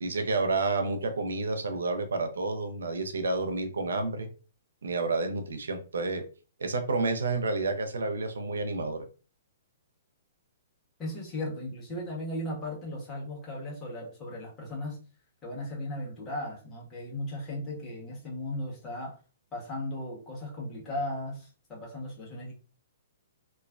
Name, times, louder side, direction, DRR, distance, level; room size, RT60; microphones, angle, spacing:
voice 1, 0.0-4.3 4.8-6.2 6.6-9.1, right 3 dB, 80° right, 0.5 m, -30 dB
voice 2, 11.0-15.0 15.4-19.2 19.5-22.5, left 1 dB, 20° left, 1.3 m, -36 dB
3.1 x 2.1 x 2.4 m
hypercardioid pair, 130°, 0 cm